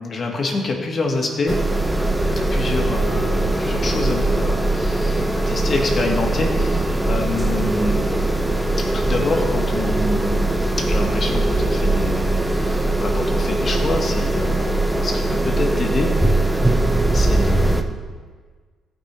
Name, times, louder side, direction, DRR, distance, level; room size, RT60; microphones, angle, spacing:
voice 1, 0.0-1.6 2.4-8.4 8.8-10.5 10.8-16.1 17.1-17.9, left 2 dB, 40° left, 1 dB, 2.0 m, -26 dB
sound 1, 1.5-17.8, right 2 dB, 5° right, 0.8 m, -20 dB
15.5 x 5.5 x 4.9 m, 1.5 s
cardioid pair, 90°, 0 cm